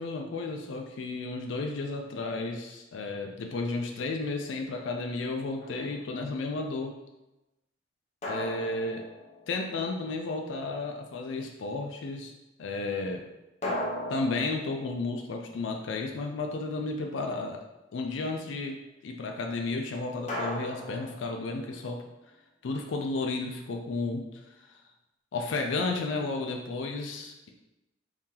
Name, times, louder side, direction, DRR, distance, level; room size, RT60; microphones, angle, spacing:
voice 1, 0.0-7.0 8.3-9.0 9.5-12.3 12.6-13.2 14.1-17.6 17.9-22.0 22.6-24.8 25.3-27.5, left 3 dB, 85° left, 3 dB, 0.4 m, -33 dB
sound 1, 5.6-6.2 8.2-10.0 13.6-16.2 20.3-21.9, left 1 dB, 40° left, 0.7 m, -38 dB
2.8 x 2.8 x 3.7 m, 0.99 s
head